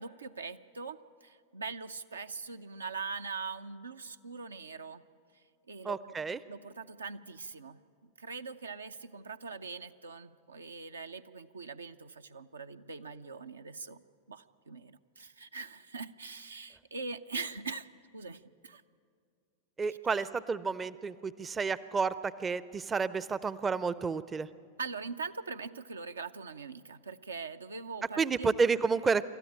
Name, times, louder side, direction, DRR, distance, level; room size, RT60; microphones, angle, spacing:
voice 1, 0.0-5.0 5.7-6.2 6.5-14.0 14.3-17.9 18.1-18.8 24.8-28.5, right 4 dB, 75° right, 9 dB, 0.6 m, -42 dB
voice 2, 5.8-6.4 19.8-24.5 28.2-29.2, right 5 dB, 20° right, 17 dB, 0.5 m, -30 dB
27.5 x 13.5 x 8.9 m, 2.3 s
figure-of-eight pair, 90°, 0 cm